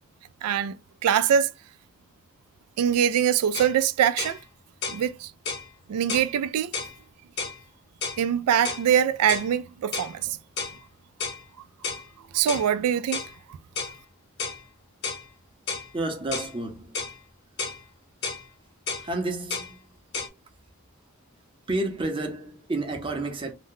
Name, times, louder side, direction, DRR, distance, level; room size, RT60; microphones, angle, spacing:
voice 1, 0.4-0.7 1.0-1.5 2.8-4.4 4.9-5.3 5.9-6.7 8.2-10.4 12.3-13.2, right 9 dB, 85° right, 0.3 m, -23 dB
sound 1, 3.5-3.8 4.2-4.4 4.8-5.0 5.5-5.7 6.1-6.3 6.7-6.9 7.4-7.6 8.0-8.2 8.6-8.9 9.3-9.5 9.9-10.1 10.6-10.8 11.2-11.4 11.8-12.1 12.5-12.7 13.1-13.3 13.8-14.0 14.4-14.6 15.0-15.2 15.7-15.9 16.3-16.5 16.9-17.2 17.6-17.8 18.2-18.4 18.9-19.1 19.5-19.7 20.1-20.3, left 4 dB, 50° left, 0.8 m, -32 dB
voice 2, 15.9-17.0 19.0-19.8 21.7-23.5, right 2 dB, 25° right, 0.6 m, -30 dB
2.6 x 2.1 x 3.6 m
head